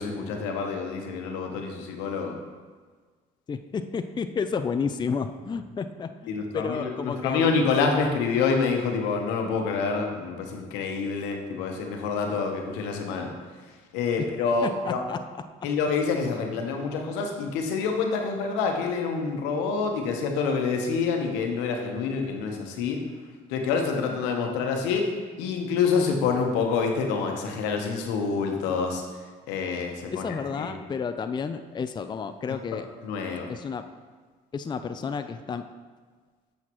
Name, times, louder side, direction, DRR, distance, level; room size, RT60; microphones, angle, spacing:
voice 1, 0.0-2.4 6.3-13.3 13.9-15.0 15.6-23.0 23.5-25.1 25.4-29.0 29.5-30.7 33.0-33.5, left 5 dB, 90° left, 3 dB, 1.0 m, -27 dB
voice 2, 3.5-7.6 14.6-15.2 30.1-32.9 33.5-33.8 34.5-35.7, left 5 dB, 25° left, 9 dB, 0.4 m, -31 dB
8.1 x 6.3 x 3.0 m, 1.5 s
supercardioid pair, 75°, 18 cm